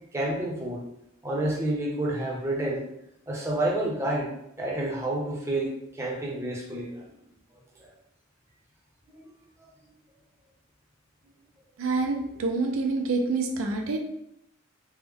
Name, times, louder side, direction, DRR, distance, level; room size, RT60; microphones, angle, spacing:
voice 1, 0.1-0.8 1.2-2.8 3.3-7.0 7.8-7.9 9.1-9.2, right 1 dB, 15° right, -3 dB, 0.6 m, -29 dB
voice 2, 11.8-14.0, right 3 dB, 65° right, 4 dB, 0.4 m, -27 dB
3.3 x 2.0 x 3.5 m, 0.77 s
head